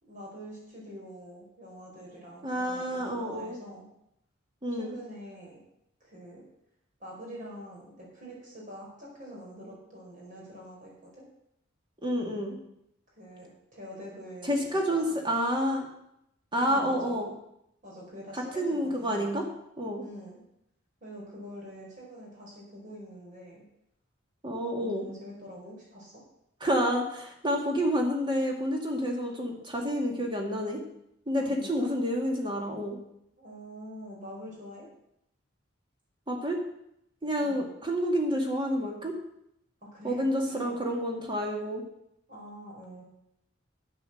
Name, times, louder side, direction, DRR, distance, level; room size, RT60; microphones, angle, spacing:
voice 1, 0.0-3.9 4.7-5.6 6.0-6.4 7.0-11.2 13.1-15.1 16.5-17.2 17.8-19.4 20.0-20.4 21.0-23.6 24.8-26.2 31.4-31.9 33.4-34.9 37.4-37.7 39.8-40.8 42.3-43.0, equal, 40° right, -3 dB, 4.7 m, -45 dB
voice 2, 2.4-3.6 4.6-5.0 12.0-12.6 14.4-15.9 16.5-17.3 18.3-19.4 19.8-20.0 24.4-25.1 26.6-30.8 31.3-33.0 36.3-36.6 37.2-39.1 40.0-41.8, equal, 25° right, 1 dB, 2.3 m, -29 dB
9.8 x 9.0 x 6.6 m, 0.77 s
head